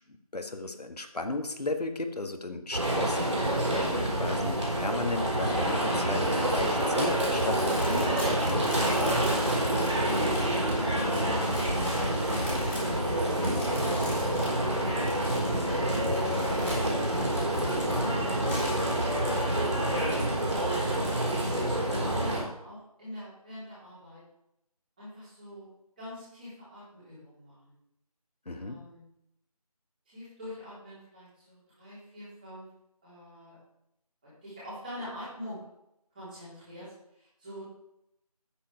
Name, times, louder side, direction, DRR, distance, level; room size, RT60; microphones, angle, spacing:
voice 1, 0.3-9.3 28.5-28.8, left 2 dB, 85° left, 6 dB, 1.4 m, -35 dB
sound 1, 2.7-22.4, right 1 dB, 50° right, 3.8 m, -27 dB
sound 2, 7.3-17.9 18.3-18.8, left 1 dB, 15° left, 2.8 m, -42 dB
voice 2, 9.9-11.1 12.5-14.9 15.3-16.0 16.8-19.3 19.9-20.7 21.3-24.2 25.0-25.7 26.0-27.7 28.5-29.0 30.1-32.7 33.0-33.6 34.2-35.6 36.1-37.6, equal, 15° right, -11 dB, 3.6 m, -44 dB
9.0 x 7.6 x 4.8 m, 0.82 s
figure-of-eight pair, 175°, 20 cm